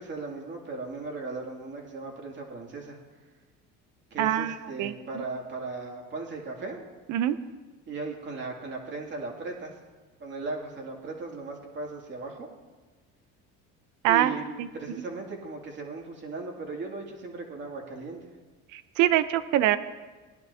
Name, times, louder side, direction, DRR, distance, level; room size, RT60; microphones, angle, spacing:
voice 1, 0.0-3.0 4.1-6.8 7.9-9.7 10.2-12.5 14.1-14.5 14.7-18.2, right 3 dB, 35° right, 0 dB, 2.6 m, -37 dB
voice 2, 4.2-5.2 7.1-7.4 14.0-14.3 14.6-14.7 18.7-19.8, right 13 dB, 70° right, 13 dB, 0.8 m, -24 dB
19.5 x 11.0 x 2.8 m, 1.3 s
cardioid pair, 115°, 30 cm